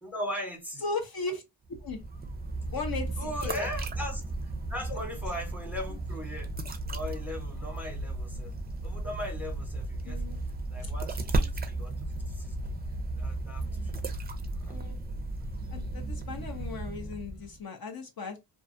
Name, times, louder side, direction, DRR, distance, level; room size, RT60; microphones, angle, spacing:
voice 1, 0.0-0.8 3.2-6.5 6.9-8.5 8.8-10.2 10.7-12.7 13.2-14.0 14.6-14.8, left 1 dB, 5° right, 0.9 m, -39 dB
voice 2, 0.8-1.4 1.8-2.0 2.7-3.7 4.9-5.0 10.0-10.4 10.8-10.9 14.7-15.0 15.7-18.4, left 4 dB, 50° left, 0.6 m, -37 dB
sound 1, 1.7-17.6, right 2 dB, 25° right, 0.4 m, -34 dB
2.5 x 2.3 x 2.5 m
wide cardioid pair, 90°, 46 cm